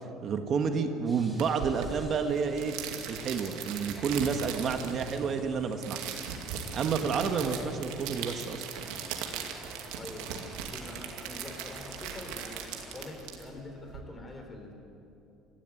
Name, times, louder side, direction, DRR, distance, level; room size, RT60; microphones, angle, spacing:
voice 1, 0.2-2.8 3.1-6.0 6.7-8.6, right 6 dB, 45° right, 6 dB, 1.5 m, -30 dB
sound 1, 1.1-13.1, equal, 5° left, 3.4 m, -51 dB
sound 2, 1.4-14.0, right 7 dB, 85° right, 2.3 m, -39 dB
voice 2, 9.9-14.7, left 2 dB, 20° left, 4 dB, 3.8 m, -45 dB
20.5 x 14.5 x 9.7 m, 2.8 s
cardioid pair, 130°, 0 cm